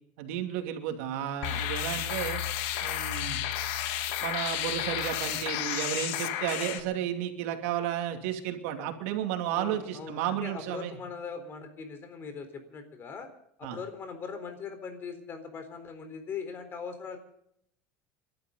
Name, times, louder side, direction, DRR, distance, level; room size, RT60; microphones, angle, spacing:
voice 1, 0.2-2.4 2.8-3.4 4.2-11.0 13.6-13.8, right 10 dB, 80° right, 5 dB, 2.7 m, -33 dB
sound 1, 1.4-6.8, left 11 dB, 75° left, 1.9 m, -32 dB
voice 2, 9.5-13.3 13.6-17.2, left 5 dB, 35° left, 8 dB, 4.1 m, -40 dB
30.0 x 12.5 x 3.9 m, 0.73 s
cardioid pair, 135°, 7 cm